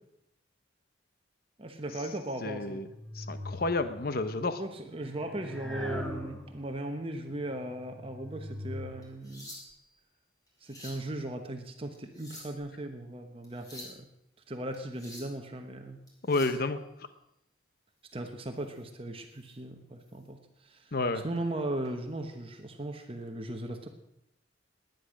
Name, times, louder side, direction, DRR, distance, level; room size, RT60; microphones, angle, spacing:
voice 1, 1.6-2.9 4.4-9.5 10.6-14.0 14.5-16.0 18.1-20.4 20.6-23.9, right 1 dB, 30° right, 5 dB, 1.1 m, -38 dB
voice 2, 2.4-2.9 3.1-4.6 16.3-16.8 20.9-21.2, left 3 dB, 50° left, 10 dB, 0.9 m, -30 dB
sound 1, 2.8-4.2 5.0-6.8 7.5-9.0, left 1 dB, 5° left, 1.8 m, -41 dB
sound 2, 9.0-9.9 10.5-11.1 11.9-12.7 13.4-14.0 14.7-15.4 16.1-16.6 18.7-18.8 19.3-19.6 20.0-20.2 21.3-21.9 23.0-23.2, left 1 dB, 20° left, 4.6 m, -48 dB
18.5 x 10.5 x 6.4 m, 0.79 s
head